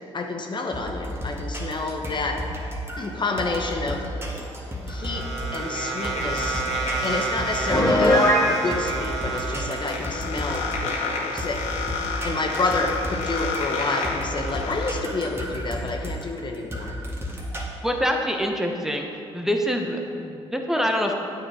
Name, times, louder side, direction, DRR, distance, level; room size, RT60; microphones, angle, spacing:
voice 1, 0.1-2.4 3.0-4.0 4.9-5.3 5.5-6.6 7.0-11.6 12.2-17.0, left 3 dB, 40° left, 2 dB, 0.9 m, -29 dB
sound 1, 0.7-17.6, equal, 20° right, 1.7 m, -33 dB
sound 2, 4.4-14.9, equal, 70° left, 2.0 m, -30 dB
Piano, 7.7-8.5, equal, 25° left, 2.3 m, -18 dB
voice 2, 17.8-19.1 19.3-21.1, equal, 5° right, 2 dB, 1.1 m, -25 dB
8.7 x 7.0 x 5.0 m, 2.6 s
hypercardioid pair, 50°, 13 cm